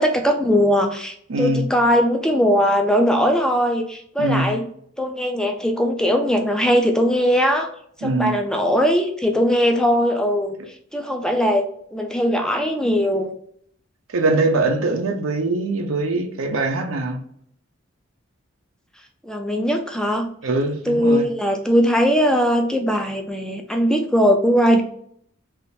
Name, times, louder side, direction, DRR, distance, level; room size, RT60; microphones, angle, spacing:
voice 1, 0.0-4.6 5.0-7.7 8.0-10.6 10.9-11.7 11.9-13.3 19.2-20.3 20.9-24.8, equal, 5° left, 4 dB, 0.4 m, -19 dB
voice 2, 1.3-1.7 4.2-4.6 8.0-8.4 14.1-17.2 20.4-21.3, right 2 dB, 90° right, 4 dB, 0.6 m, -22 dB
3.6 x 2.4 x 2.6 m, 0.65 s
head